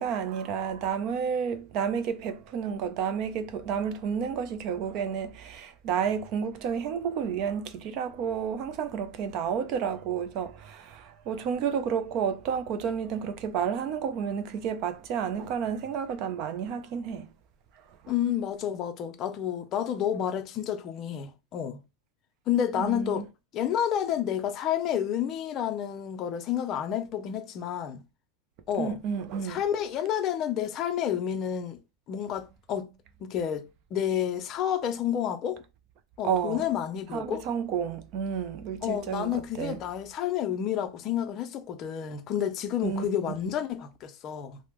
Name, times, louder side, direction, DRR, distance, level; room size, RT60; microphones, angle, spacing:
voice 1, 0.0-17.3 18.0-18.1 22.7-23.2 28.8-29.6 36.2-36.6 37.1-39.8 42.8-43.1, right 7 dB, 35° right, 0.4 m, -31 dB
voice 2, 18.1-21.8 22.5-23.3 23.5-28.0 28.7-29.0 29.4-31.8 32.1-32.9 33.2-35.6 36.2-37.5 38.8-44.6, left 9 dB, 25° left, 0.4 m, -30 dB
3.4 x 2.0 x 2.9 m
supercardioid pair, 170°, 0 cm